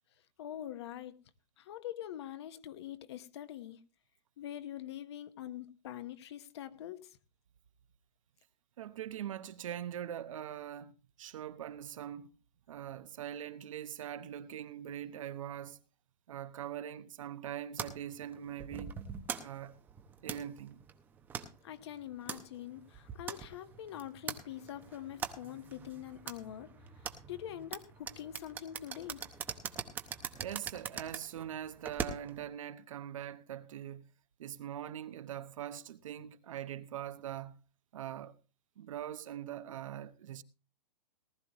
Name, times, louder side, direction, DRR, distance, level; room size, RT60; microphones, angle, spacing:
voice 1, 0.4-1.2 1.6-3.8 4.4-7.2 21.6-29.2, left 11 dB, 40° left, 1.2 m, -44 dB
voice 2, 8.8-12.3 12.7-15.8 16.3-18.9 19.4-19.8 20.2-20.8 30.4-34.1 34.4-37.5 37.9-38.4 38.8-40.4, right 10 dB, 50° right, 1.0 m, -42 dB
sound 1, 17.8-32.5, right 7 dB, 10° right, 0.8 m, -43 dB
19.0 x 12.5 x 3.0 m
hypercardioid pair, 170°, 21 cm